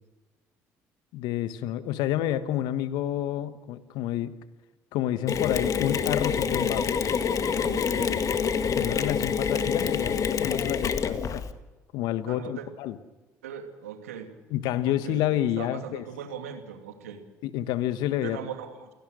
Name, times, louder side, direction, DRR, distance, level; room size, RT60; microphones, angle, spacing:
voice 1, 1.1-4.3 4.9-7.0 8.8-11.4 11.9-13.0 14.5-16.0 17.4-18.4, left 12 dB, 70° left, 12 dB, 1.4 m, -29 dB
Mechanisms, 5.3-11.5, left 6 dB, 45° left, 1.8 m, -27 dB
voice 2, 7.6-8.2 10.3-10.4 12.3-12.7 13.4-14.3 14.9-15.2 15.6-17.2 18.2-18.9, right 8 dB, 85° right, 6 dB, 2.5 m, -39 dB
29.0 x 17.5 x 6.5 m, 1.2 s
hypercardioid pair, 55°, 8 cm